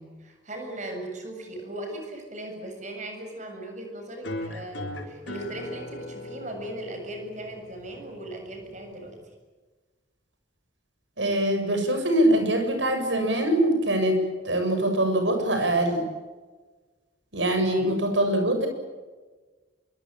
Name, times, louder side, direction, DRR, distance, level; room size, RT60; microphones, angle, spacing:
voice 1, 0.0-9.2 17.7-17.9, right 1 dB, 40° right, 4 dB, 7.5 m, -38 dB
sound 1, 4.2-9.2, left 1 dB, 75° left, 4.4 m, -39 dB
voice 2, 11.2-16.1 17.3-18.7, right 1 dB, 75° right, 5 dB, 7.4 m, -23 dB
26.0 x 24.0 x 9.1 m, 1.3 s
head